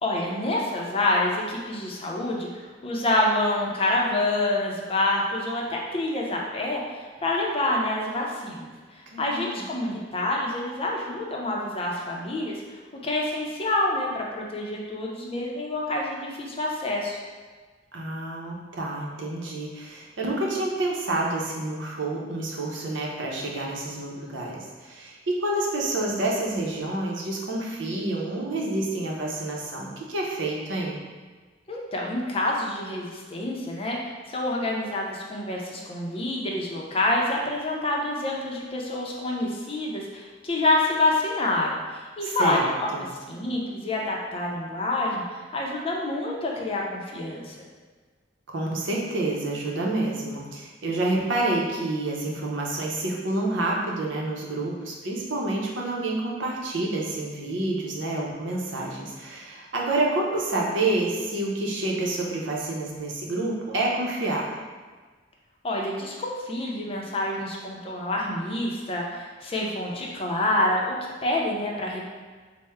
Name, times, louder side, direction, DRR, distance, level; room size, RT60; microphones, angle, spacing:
voice 1, 0.0-17.2 31.7-42.9 43.3-47.6 65.6-72.0, left 2 dB, 30° left, -2 dB, 0.5 m, -27 dB
voice 2, 9.1-9.5 17.9-31.0 42.4-42.6 42.9-43.0 48.5-64.5, right 2 dB, 80° right, -2 dB, 0.7 m, -28 dB
4.3 x 2.1 x 3.4 m, 1.4 s
head